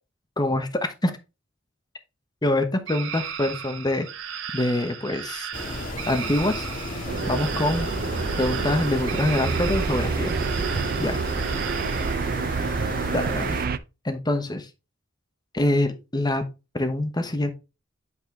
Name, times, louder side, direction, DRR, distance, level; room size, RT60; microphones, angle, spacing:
voice 1, 0.4-1.1 2.4-4.1 4.5-5.5 6.1-6.7 7.3-7.9 8.4-10.3 11.0-11.2 13.1-13.5 14.0-14.7 15.5-16.4 16.7-17.5, left 1 dB, 20° left, 7 dB, 1.1 m, -25 dB
sound 1, 2.9-12.1, right 8 dB, 80° right, 1.2 m, -36 dB
sound 2, 5.5-13.7, left 1 dB, 45° left, 2.0 m, -33 dB
sound 3, 7.1-13.8, right 5 dB, 50° right, 0.4 m, -28 dB
8.4 x 4.4 x 3.4 m, 0.27 s
head